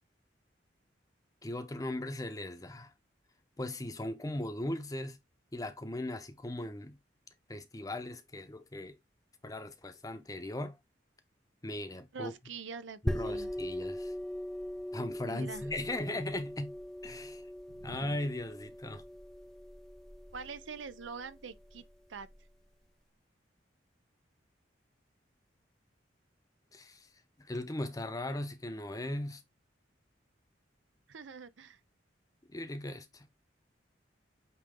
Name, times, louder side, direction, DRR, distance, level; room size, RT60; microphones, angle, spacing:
voice 1, 1.4-2.9 3.6-5.2 5.5-7.0 7.5-9.0 9.4-10.8 11.6-12.3 13.0-14.1 14.9-16.7 17.0-17.4 17.8-19.0 26.7-27.1 27.4-29.4 32.5-33.3, left 1 dB, 20° left, 0.7 m, -38 dB
voice 2, 12.1-13.5 15.3-15.7 17.7-18.2 20.3-21.8 22.1-22.3 31.1-31.8, right 5 dB, 85° right, 0.6 m, -44 dB
sound 1, 13.1-22.4, equal, ahead, 0.4 m, -40 dB
8.6 x 3.0 x 3.7 m
head